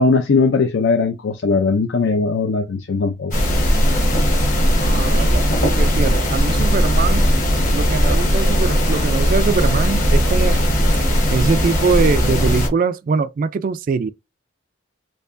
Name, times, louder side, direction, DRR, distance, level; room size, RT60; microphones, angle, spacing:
voice 1, 0.0-3.3, left 4 dB, 65° left, 0.4 m, -18 dB
sound 1, 3.3-12.7, equal, 45° left, 1.3 m, -17 dB
voice 2, 4.8-7.3 7.7-10.6 11.3-14.1, right 5 dB, 45° right, 0.3 m, -22 dB
4.5 x 2.8 x 2.5 m
head